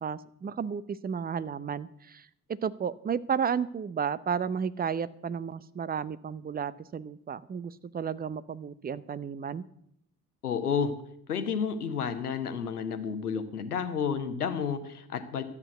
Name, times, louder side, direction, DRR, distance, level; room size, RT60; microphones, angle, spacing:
voice 1, 0.0-9.7, right 7 dB, 20° right, 18 dB, 0.7 m, -33 dB
voice 2, 10.4-10.9 11.3-15.4, left 6 dB, 80° left, 10 dB, 1.1 m, -31 dB
13.0 x 8.4 x 8.1 m, 0.73 s
figure-of-eight pair, 50°, 44 cm